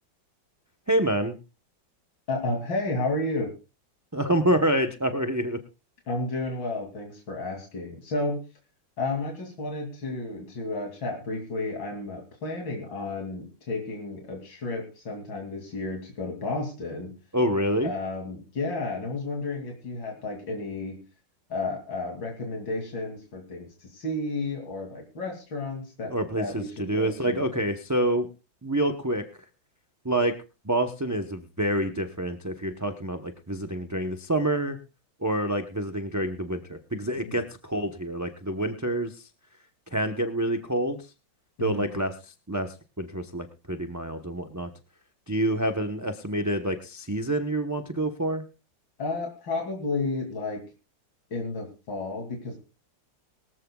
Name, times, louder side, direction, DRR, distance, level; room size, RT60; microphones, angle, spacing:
voice 1, 0.9-1.4 4.1-5.6 17.3-17.9 26.1-28.3 28.6-29.2 30.0-30.4 30.6-34.8 35.2-39.3 39.9-41.0 41.6-44.7 45.3-48.4, right 1 dB, 20° right, 6 dB, 0.5 m, -27 dB
voice 2, 2.3-3.5 6.1-8.4 9.0-17.1 17.8-21.0 21.5-27.4 37.2-37.4 41.6-41.9 49.0-50.6 51.3-52.6, left 2 dB, 75° left, 1 dB, 3.5 m, -32 dB
22.0 x 14.0 x 2.3 m, 0.31 s
omnidirectional pair, 2.0 m